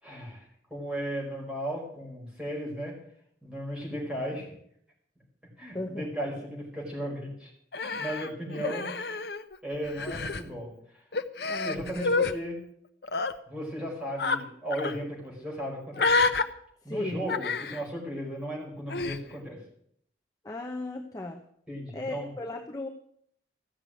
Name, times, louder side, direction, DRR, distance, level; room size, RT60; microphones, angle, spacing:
voice 1, 0.0-2.9 3.4-4.5 5.6-8.9 9.6-11.0 11.6-12.6 13.5-16.1 16.8-19.6 21.7-22.3, equal, 5° right, -4 dB, 5.0 m, -36 dB
voice 2, 5.7-6.4 11.5-12.1 16.9-17.3 20.4-21.4 21.9-22.9, left 2 dB, 20° left, 1 dB, 0.9 m, -36 dB
Human voice, 7.7-9.6 9.8-10.4 11.1-12.3 13.0-13.3 14.2-14.4 14.7-15.0 16.0-16.4 17.3-17.8 18.9-19.2, left 3 dB, 60° left, 0.8 m, -28 dB
14.5 x 6.8 x 9.0 m, 0.68 s
head